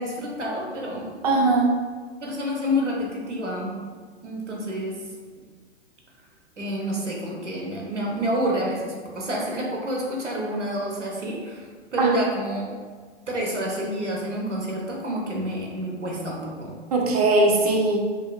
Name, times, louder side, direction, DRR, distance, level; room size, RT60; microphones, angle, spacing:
voice 1, 0.0-1.3 2.2-3.7 4.2-5.0 6.6-12.7 13.3-16.7, equal, 85° right, -2 dB, 0.7 m, -28 dB
voice 2, 1.2-1.7 12.0-12.1 16.9-18.0, right 2 dB, 35° right, 0 dB, 0.4 m, -19 dB
2.7 x 2.2 x 2.3 m, 1.5 s
figure-of-eight pair, 110°, 35 cm